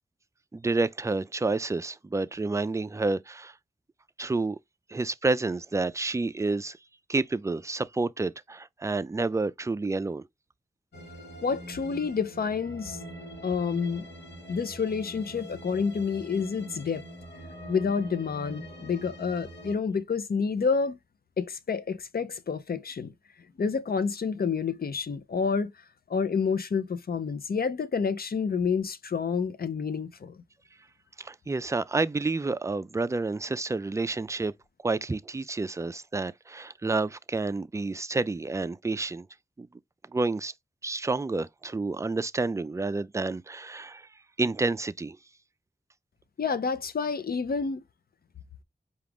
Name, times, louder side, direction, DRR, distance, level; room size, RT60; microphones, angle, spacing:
voice 1, 0.5-3.5 4.2-4.6 4.9-6.8 7.1-10.3 31.2-34.5 34.8-39.3 39.6-39.7 40.1-40.5 40.8-44.1 44.4-45.2, right 3 dB, 15° right, 0.3 m, -29 dB
sound 1, 10.9-19.8, equal, 75° left, 1.1 m, -44 dB
voice 2, 11.4-13.0 13.4-14.1 14.5-17.0 17.7-21.0 21.4-23.1 23.6-25.7 26.1-30.4 46.4-47.8, left 5 dB, 55° left, 0.6 m, -29 dB
4.7 x 2.4 x 3.5 m
cardioid pair, 40°, 18 cm